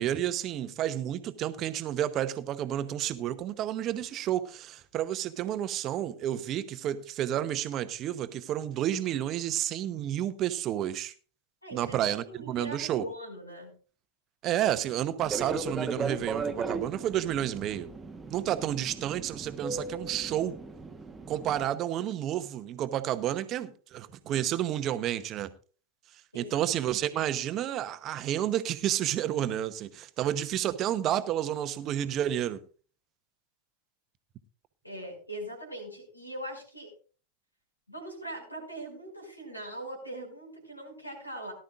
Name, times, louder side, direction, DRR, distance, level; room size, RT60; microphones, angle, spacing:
voice 1, 0.0-11.1 11.7-13.1 14.4-17.9 18.3-20.5 21.3-25.5 26.3-32.6, right 11 dB, 35° right, 0.9 m, -30 dB
voice 2, 11.6-12.0 12.3-13.7 26.3-26.6 34.8-36.9 37.9-41.5, right 1 dB, 90° left, 5.4 m, -41 dB
Fixed-wing aircraft airplane, 15.2-21.6, right 4 dB, 15° right, 1.2 m, -37 dB
18.0 x 12.0 x 2.5 m
figure-of-eight pair, 90°, 0 cm